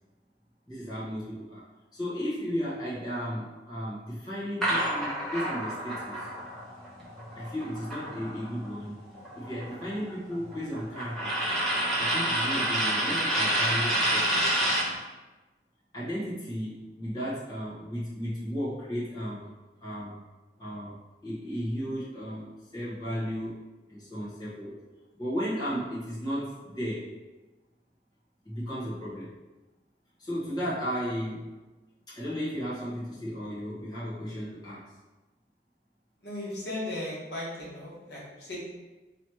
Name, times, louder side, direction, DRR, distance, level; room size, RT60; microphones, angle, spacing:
voice 1, 0.7-1.7 1.9-6.3 7.3-9.0 9.3-11.4 12.0-14.5 15.9-19.5 19.8-20.2 20.6-21.0 21.2-23.6 23.9-24.8 25.2-27.1 28.4-29.3 30.2-31.4 32.1-34.9, equal, 25° left, -10 dB, 1.3 m, -34 dB
sound 1, 4.6-8.7 9.0-15.0, right 1 dB, 5° left, 0.9 m, -29 dB
voice 2, 36.2-38.6, left 1 dB, 70° left, -6 dB, 1.3 m, -36 dB
3.2 x 3.0 x 4.4 m, 1.1 s
head